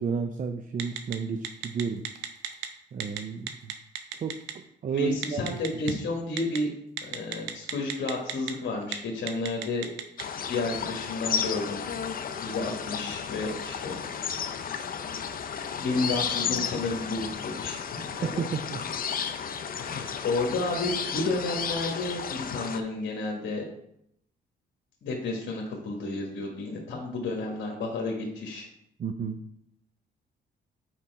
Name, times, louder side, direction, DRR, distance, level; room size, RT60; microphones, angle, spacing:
voice 1, 0.0-2.0 2.9-3.7 4.1-4.4 4.8-5.6 18.2-18.8 29.0-29.4, right 6 dB, 40° right, 8 dB, 0.5 m, -31 dB
Telephone, 0.8-1.1 1.4-2.7 3.0-3.2 3.5-4.5 5.2-5.9 6.4-6.6 7.0-8.5 8.8-8.9 9.3-10.2, right 11 dB, 90° right, 0.7 m, -32 dB
voice 2, 4.9-6.7 7.0-9.9 10.5-11.8 12.4-14.0 15.3-18.4 19.8-23.7 25.0-28.7, left 2 dB, 65° left, 1 dB, 1.4 m, -31 dB
sound 1, 10.2-22.8, left 7 dB, 45° left, 0.6 m, -33 dB
6.0 x 5.0 x 4.5 m, 0.76 s
cardioid pair, 90°, 20 cm